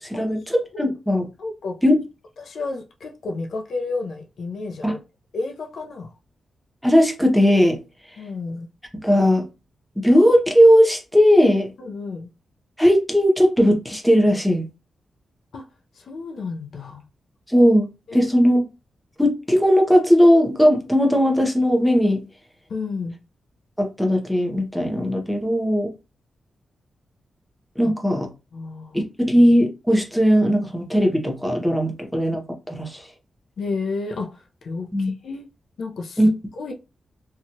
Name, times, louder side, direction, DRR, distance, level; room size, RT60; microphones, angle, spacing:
voice 1, 0.0-1.3 1.8-2.0 4.8-5.0 6.8-7.8 9.0-9.4 10.0-11.7 12.8-14.7 17.5-18.7 19.2-22.2 23.8-25.9 27.8-28.3 28.9-33.1 34.9-35.1 36.2-36.3, equal, ahead, 0.7 m, -18 dB
voice 2, 1.4-1.8 2.4-5.0 5.3-6.1 8.2-8.7 11.8-12.3 15.5-15.6 16.0-17.0 18.1-18.3 22.7-23.2 28.5-29.0 31.8-32.0 33.6-34.4 34.6-35.5 35.8-36.2 36.6-36.7, left 3 dB, 70° left, 0.5 m, -31 dB
2.9 x 2.3 x 2.7 m
wide cardioid pair, 115°, 0 cm